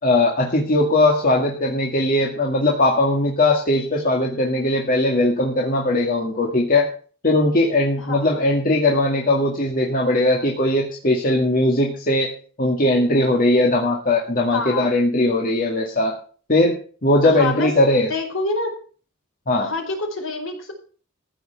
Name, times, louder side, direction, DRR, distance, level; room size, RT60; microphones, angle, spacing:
voice 1, 0.0-6.9 7.2-12.3 12.6-16.1 16.5-16.8 17.0-18.1 19.5-19.7, left 1 dB, 40° left, -1 dB, 2.1 m, -19 dB
voice 2, 8.0-8.4 14.5-14.9 17.2-17.7 18.1-18.7 19.6-20.7, left 3 dB, 65° left, 3 dB, 4.9 m, -27 dB
15.0 x 5.9 x 8.1 m, 0.42 s
head